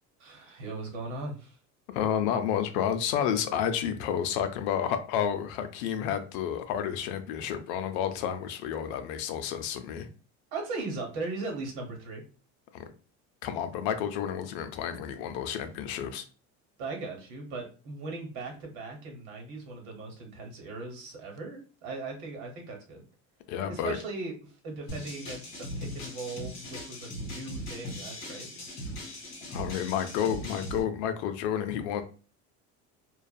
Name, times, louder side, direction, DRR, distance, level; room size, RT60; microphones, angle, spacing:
voice 1, 0.2-1.6 10.5-12.2 16.8-23.0 23.6-28.7, right 3 dB, 65° right, 2 dB, 1.0 m, -38 dB
voice 2, 1.9-10.1 12.7-12.8 13.4-16.2 23.5-24.0 29.5-32.0, left 9 dB, 75° left, 8 dB, 0.5 m, -30 dB
sound 1, 24.9-30.8, equal, 40° left, 1.5 m, -39 dB
2.6 x 2.3 x 2.2 m, 0.36 s
cardioid pair, 160°, 32 cm